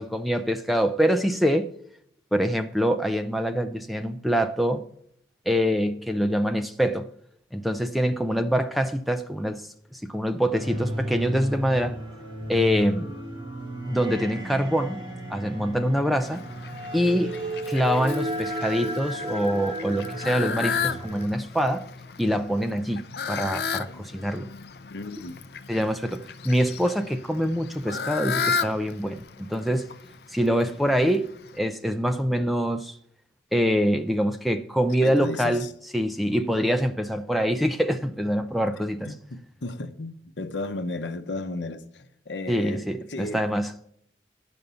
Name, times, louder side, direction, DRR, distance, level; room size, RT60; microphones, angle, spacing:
voice 1, 0.0-1.7 2.3-4.8 5.5-7.1 7.5-12.0 12.5-13.1 13.9-15.0 15.3-16.4 16.9-17.3 17.7-21.9 22.2-24.5 25.7-29.9 30.3-33.0 33.5-35.6 35.9-39.1 42.5-43.7, equal, ahead, 0.4 m, -25 dB
sound 1, 10.6-21.3, right 1 dB, 25° right, 2.2 m, -34 dB
Fowl, 16.2-31.6, left 6 dB, 60° left, 0.5 m, -34 dB
voice 2, 24.9-25.4 35.0-35.7 38.7-42.8 43.1-43.5, left 2 dB, 80° left, 0.8 m, -34 dB
11.0 x 5.2 x 6.9 m
head